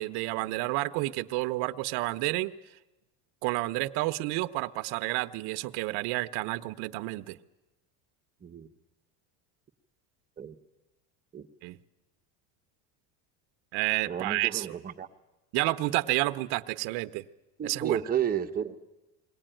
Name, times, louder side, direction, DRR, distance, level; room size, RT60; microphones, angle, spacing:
voice 1, 0.0-2.5 3.4-7.4 11.6-11.8 13.7-14.8 15.5-17.2 17.6-18.0, right 20 dB, 60° right, 9 dB, 0.8 m, -30 dB
voice 2, 14.1-15.1 17.6-18.8, right 9 dB, 20° right, 4 dB, 1.0 m, -32 dB
22.0 x 18.0 x 9.0 m, 1.0 s
cardioid pair, 145°, 44 cm